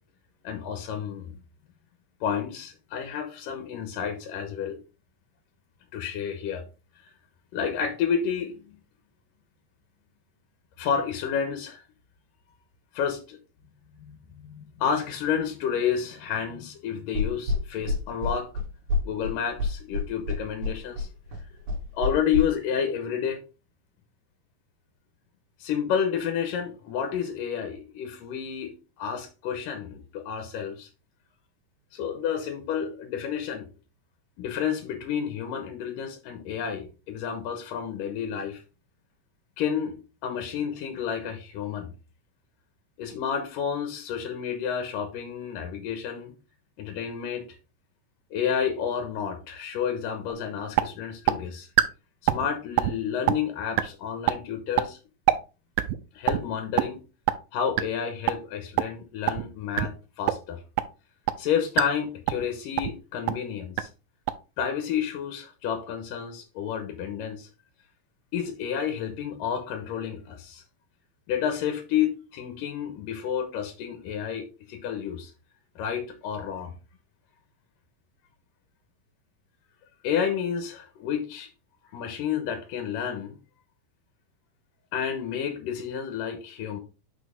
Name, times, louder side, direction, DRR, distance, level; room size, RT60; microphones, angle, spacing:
voice 1, 0.4-1.3 2.2-4.8 5.9-6.6 7.5-8.8 10.8-11.8 12.9-13.4 14.0-18.5 19.0-21.1 21.9-23.4 25.6-30.9 31.9-33.7 34.4-38.6 39.6-40.0 40.2-41.9 43.0-46.3 46.8-47.5 48.3-51.7 52.2-55.0 56.1-57.0 57.5-60.6 61.4-63.9 64.6-67.5 68.3-70.6 71.3-75.3 75.8-76.7 80.0-81.5 81.9-83.4 84.9-86.8, left 8 dB, 75° left, 2.6 m, -30 dB
sound 1, 17.1-22.4, left 3 dB, 60° right, 3.1 m, -28 dB
sound 2, 50.3-50.4 50.8-50.9 51.3-51.4 51.8-51.9 52.3-52.5 52.8-52.9 53.3-53.4 53.8-53.9 54.3-54.4 54.8-54.9 55.3-55.4 55.8-56.0 56.3-56.4 56.8-56.9 57.3-57.4 57.8-57.9 58.3-58.4 58.8-58.9 59.3-59.4 59.8-59.9 60.3-60.4 60.8-60.9 61.3-61.4 61.8-61.9 62.3-62.5 62.8-62.9 63.3-63.4 63.8-63.9 64.3-64.4, right 15 dB, 90° right, 2.4 m, -21 dB
6.2 x 5.8 x 3.6 m
omnidirectional pair, 4.0 m